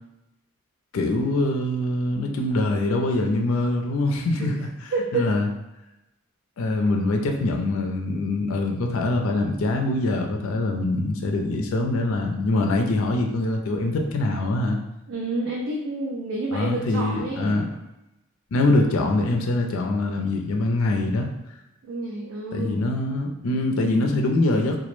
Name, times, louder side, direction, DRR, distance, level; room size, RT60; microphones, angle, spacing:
voice 1, 0.9-4.7 5.1-5.5 6.6-14.8 16.5-17.7 18.5-21.3 22.5-24.8, left 2 dB, 70° left, 2 dB, 0.4 m, -23 dB
voice 2, 4.9-5.3 15.1-17.6 21.8-22.9, right 2 dB, 70° right, -2 dB, 0.4 m, -29 dB
2.2 x 2.0 x 3.0 m, 0.92 s
head